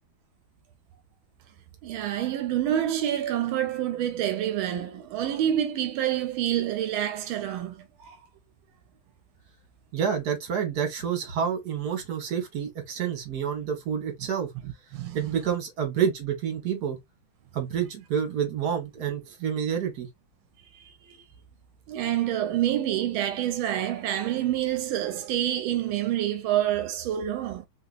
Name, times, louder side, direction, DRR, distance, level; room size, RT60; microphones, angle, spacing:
voice 1, 1.8-8.2 14.6-15.2 20.8-21.2 21.9-27.7, right 11 dB, 90° right, 1.4 m, -27 dB
voice 2, 9.9-14.5 15.1-17.0 17.5-20.1, right 7 dB, 55° right, 1.7 m, -28 dB
3.5 x 2.8 x 2.4 m
omnidirectional pair, 2.2 m